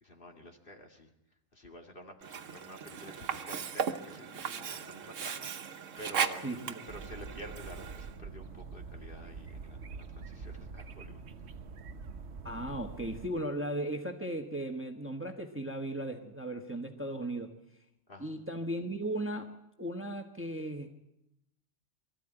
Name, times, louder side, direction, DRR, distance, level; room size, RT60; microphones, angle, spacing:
voice 1, 0.0-1.1 1.5-6.6 6.9-11.2 18.1-18.4, equal, 45° left, 3 dB, 2.4 m, -49 dB
Sink (filling or washing), 2.2-8.2, right 7 dB, 85° right, 1.4 m, -37 dB
voice 2, 6.4-6.7 12.4-17.5 18.2-19.5 19.8-21.0, right 1 dB, 10° right, 4 dB, 1.3 m, -36 dB
sound 1, 6.9-13.3, right 5 dB, 60° right, 1.2 m, -45 dB
23.5 x 14.0 x 9.0 m, 0.87 s
omnidirectional pair, 1.3 m